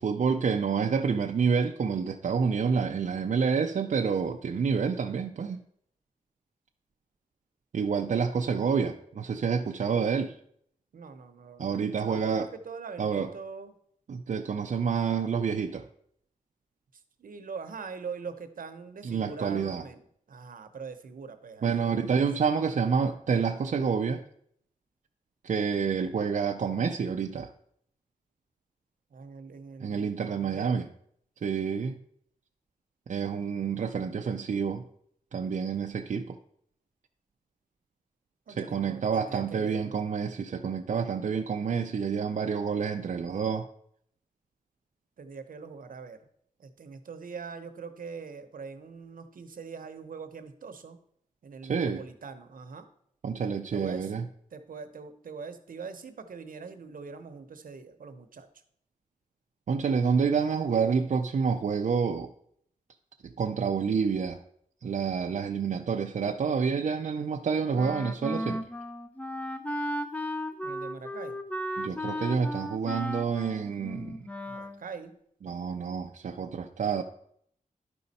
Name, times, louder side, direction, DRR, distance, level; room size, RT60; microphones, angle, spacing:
voice 1, 0.0-5.6 7.7-10.3 11.6-12.5 13.0-13.3 14.1-15.8 19.0-19.8 21.6-24.2 25.4-27.5 29.8-30.9 31.4-32.0 33.1-34.8 35.3-36.4 38.5-43.7 51.6-52.0 53.2-54.3 59.7-62.3 63.2-64.4 64.8-68.6 71.8-74.3 75.4-77.0, right 6 dB, 60° right, 3 dB, 0.5 m, -28 dB
voice 2, 10.9-11.8 12.1-13.7 16.9-20.0 20.3-22.3 29.1-30.9 38.5-40.0 45.2-46.3 46.6-51.0 51.4-52.9 53.7-54.1 54.5-58.5 70.6-71.4 74.5-75.2, right 5 dB, 75° right, 8 dB, 0.9 m, -42 dB
Wind instrument woodwind instrument, 67.7-74.8, equal, 10° left, 0.5 m, -35 dB
11.0 x 5.3 x 4.1 m, 0.67 s
wide cardioid pair, 135°, 14 cm